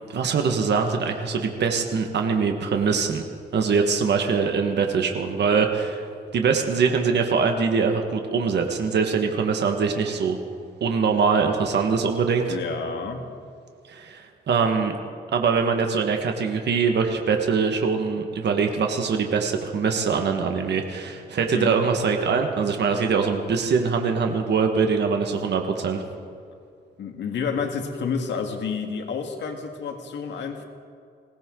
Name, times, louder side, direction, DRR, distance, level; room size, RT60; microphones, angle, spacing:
voice 1, 0.1-3.2 3.5-6.0 6.3-10.4 10.8-12.6 13.9-15.0 15.3-26.0, right 5 dB, 70° right, 4 dB, 1.5 m, -23 dB
voice 2, 12.5-13.2 21.5-21.8 27.0-30.6, left 5 dB, 90° left, 4 dB, 1.8 m, -29 dB
20.5 x 17.5 x 3.8 m, 2.3 s
cardioid pair, 105°, 18 cm